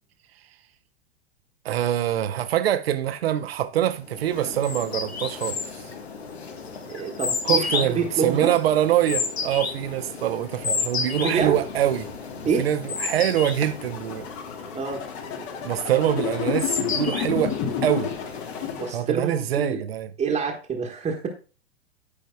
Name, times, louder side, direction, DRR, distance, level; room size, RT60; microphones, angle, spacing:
voice 1, 1.6-5.6 7.4-12.1 12.6-14.3 15.6-17.6 17.8-18.1 18.9-20.1, right 11 dB, 65° right, 0.8 m, -24 dB
sound 1, 4.1-19.0, left 5 dB, 75° left, 1.3 m, -32 dB
voice 2, 6.8-8.6 11.1-11.6 12.4-12.7 14.7-15.0 18.7-19.8 20.2-21.3, right 5 dB, 20° right, 1.2 m, -27 dB
sound 2, 13.6-18.9, left 9 dB, 40° left, 1.3 m, -30 dB
13.0 x 5.2 x 2.2 m
figure-of-eight pair, 100°, 32 cm